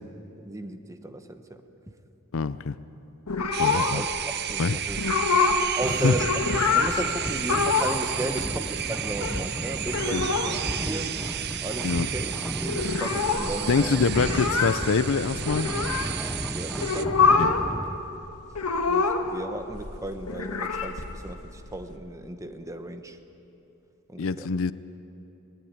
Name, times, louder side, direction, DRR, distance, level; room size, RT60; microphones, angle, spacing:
voice 1, 0.4-1.6 3.7-4.1 4.4-5.0 5.8-6.3 6.7-10.6 10.8-11.2 11.6-14.1 16.5-17.2 18.9-23.2 24.1-24.5, right 1 dB, 15° right, 8 dB, 1.0 m, -35 dB
voice 2, 2.3-2.7 3.6-4.1 4.6-4.8 6.0-6.1 10.1-10.3 11.8-12.1 13.7-15.7 17.4-17.5 24.2-24.7, left 4 dB, 60° left, 15 dB, 0.5 m, -25 dB
sound 1, 3.3-4.2 4.5-4.6 4.9-5.7 6.0-7.0 7.4-8.1 8.3-8.4 8.6-9.4 9.8-10.6 10.9-11.0 11.2-11.8 12.1-12.2 12.4-16.1 16.7-17.7 18.0-19.4 19.7-21.9, left 5 dB, 90° left, 1.6 m, -25 dB
sound 2, 3.5-17.1, right 10 dB, 50° right, 0.7 m, -33 dB
sound 3, 5.8-18.0, equal, ahead, 0.7 m, -34 dB
19.5 x 19.0 x 9.5 m, 2.9 s
head